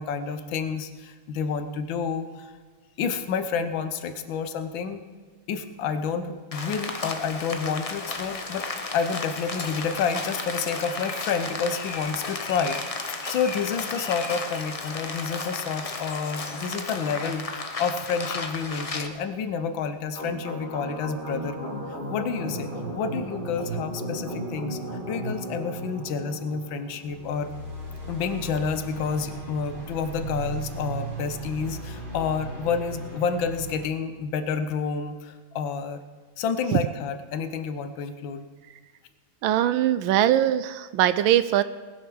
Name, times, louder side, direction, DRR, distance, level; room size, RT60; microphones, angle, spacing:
voice 1, 0.0-2.5 3.0-5.0 5.5-8.6 8.9-21.7 22.1-24.8 25.1-27.5 28.1-36.0 36.4-38.5, left 6 dB, 80° left, 9 dB, 1.6 m, -29 dB
Rain, 6.5-19.1, left 3 dB, 50° left, 0.4 m, -34 dB
sound 1, 20.1-33.9, right 1 dB, 25° right, 2.8 m, -35 dB
voice 2, 39.4-41.6, right 12 dB, 85° right, 13 dB, 1.4 m, -21 dB
19.5 x 7.3 x 6.3 m, 1.5 s
omnidirectional pair, 2.1 m